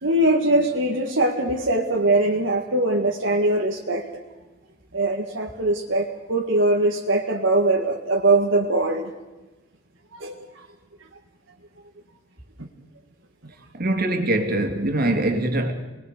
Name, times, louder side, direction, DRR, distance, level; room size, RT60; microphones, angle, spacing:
voice 1, 0.0-4.0 4.9-9.1 10.2-10.7 12.6-12.7, right 2 dB, 60° right, 2.0 m, -22 dB
voice 2, 13.7-15.7, right 1 dB, 45° right, 2.9 m, -23 dB
29.0 x 20.5 x 6.7 m
head